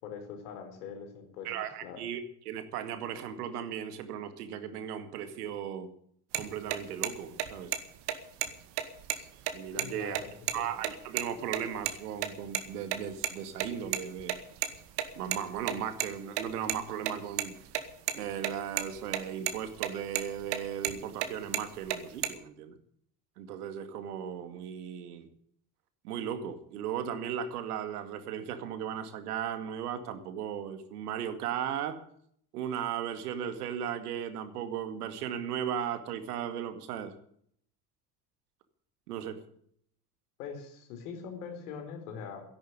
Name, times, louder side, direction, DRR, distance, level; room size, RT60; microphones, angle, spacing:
voice 1, 0.0-1.5 1.8-2.0 9.7-10.2 10.5-10.7 40.4-42.4, left 6 dB, 75° left, 5 dB, 4.5 m, -42 dB
voice 2, 1.4-2.2 2.5-5.9 6.3-7.7 9.5-10.2 10.5-14.3 15.2-17.6 18.1-22.8 23.4-25.3 26.0-32.0 32.5-37.1 39.1-39.4, right 9 dB, 75° right, 9 dB, 2.3 m, -36 dB
sound 1, 6.3-6.4 6.7-6.8 7.0-7.1 7.4-7.8 8.1-8.2 8.4-8.5 8.8-9.8 10.1-10.2 10.5-10.6 10.8-11.2 11.5-12.0 12.2-13.3 13.6-16.1 16.4-18.1 18.4-18.5 18.8-19.2 19.5-19.9 20.2-21.3 21.5-22.3, right 12 dB, 60° right, 2.1 m, -31 dB
13.0 x 11.5 x 9.7 m, 0.64 s
hypercardioid pair, 65°, 46 cm